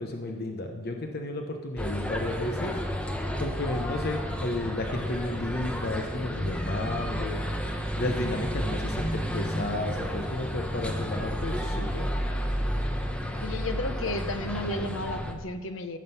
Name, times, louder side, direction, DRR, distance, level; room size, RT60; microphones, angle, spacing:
voice 1, 0.0-2.7 3.4-7.4 8.0-12.1, left 2 dB, 55° left, 4 dB, 0.9 m, -32 dB
sound 1, 1.8-15.3, equal, 5° left, 1.0 m, -31 dB
voice 2, 13.3-16.0, left 2 dB, 85° left, 9 dB, 1.0 m, -33 dB
15.5 x 7.5 x 5.8 m, 1.5 s
head